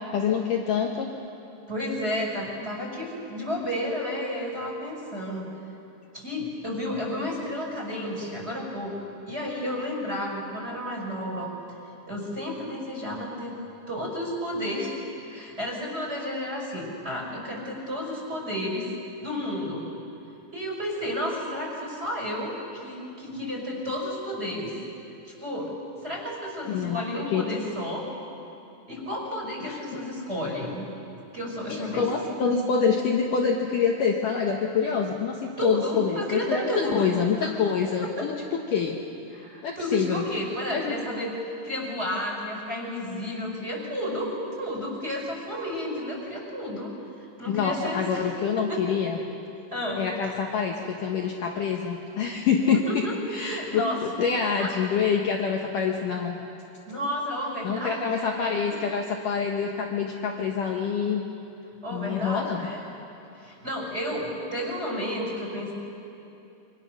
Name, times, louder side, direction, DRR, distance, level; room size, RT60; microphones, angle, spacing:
voice 1, 0.1-1.1 26.7-27.4 29.7-29.8 31.7-38.3 38.7-39.0 39.6-40.3 40.7-40.9 47.4-49.2 50.0-53.0 53.3-56.4 57.6-61.2 61.9-62.7, left 6 dB, 75° left, 1 dB, 1.9 m, -26 dB
voice 2, 1.7-5.5 6.1-11.5 12.1-13.6 13.9-18.9 19.2-19.9 20.5-24.8 25.3-25.7 26.0-28.1 28.9-30.9 31.3-32.5 35.6-37.1 37.4-37.5 38.0-38.3 39.3-41.3 41.6-46.9 47.2-49.0 49.7-50.3 52.7-53.2 53.4-54.0 54.4-54.7 56.9-58.7 61.8-62.8 63.4-65.7, equal, 15° right, -1 dB, 5.1 m, -32 dB
27.0 x 25.5 x 6.5 m, 2.8 s
omnidirectional pair, 5.6 m